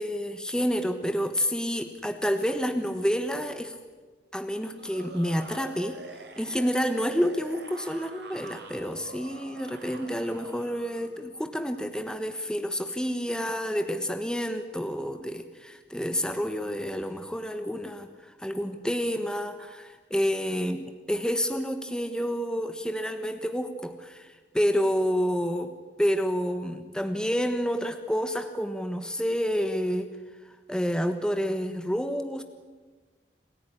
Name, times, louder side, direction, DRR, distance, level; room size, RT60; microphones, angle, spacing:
voice 1, 0.0-3.7 4.3-6.0 6.4-20.8 21.1-25.7 26.0-30.1 30.7-32.4, equal, 5° left, 8 dB, 1.3 m, -29 dB
sound 1, 1.5-3.2 4.7-11.3, right 2 dB, 70° right, 3.5 m, -46 dB
28.0 x 15.5 x 10.0 m, 1.3 s
head